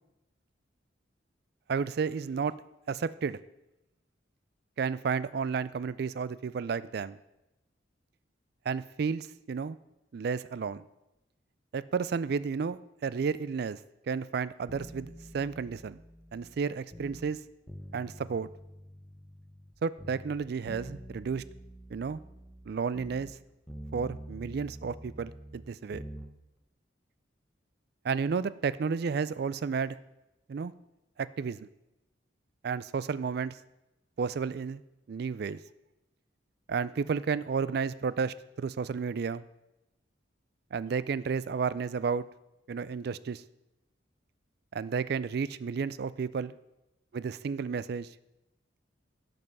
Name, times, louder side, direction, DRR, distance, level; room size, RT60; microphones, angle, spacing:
voice 1, 1.7-2.5 2.9-3.4 4.8-7.2 8.7-9.8 10.1-10.8 11.7-13.8 14.1-16.0 16.3-17.4 17.9-18.5 19.8-21.4 21.9-22.2 22.7-23.4 23.9-26.0 28.0-30.0 30.5-30.7 31.2-31.7 32.6-33.6 34.2-34.8 35.1-35.6 36.7-39.4 40.7-42.3 42.7-43.4 44.7-46.5 47.1-48.1, right 5 dB, 55° right, 17 dB, 0.3 m, -32 dB
sound 1, 14.7-17.4 17.7-19.7 20.0-23.4 23.7-26.3 26.6-26.7, equal, ahead, 0.8 m, -46 dB
12.0 x 5.4 x 5.5 m, 0.94 s
head